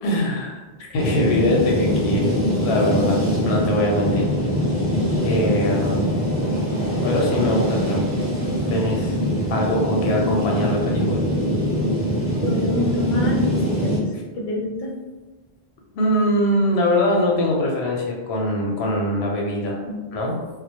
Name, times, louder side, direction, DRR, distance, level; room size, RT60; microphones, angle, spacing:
voice 1, 0.0-4.3 5.2-6.1 7.0-8.1 8.7-9.2 9.5-11.3 15.9-19.8 20.1-20.4, left 1 dB, 90° left, 0 dB, 0.8 m, -22 dB
sound 1, 1.0-14.0, equal, 15° right, 0.5 m, -23 dB
voice 2, 12.4-14.0 14.4-14.9 19.8-20.0, left 1 dB, 60° left, -1 dB, 0.6 m, -26 dB
2.1 x 2.1 x 2.8 m, 1.2 s
omnidirectional pair, 1.1 m